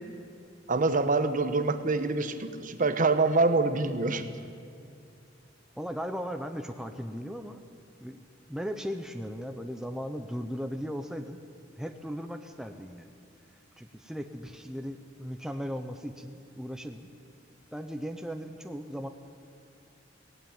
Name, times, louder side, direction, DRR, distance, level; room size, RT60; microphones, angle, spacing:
voice 1, 0.7-4.3, right 3 dB, 45° right, 10 dB, 1.1 m, -25 dB
voice 2, 5.8-7.6 8.0-8.2 8.5-11.4 11.8-13.1 13.8-17.1 17.7-19.1, equal, 5° right, 6 dB, 0.7 m, -37 dB
18.0 x 16.5 x 9.4 m, 2.4 s
head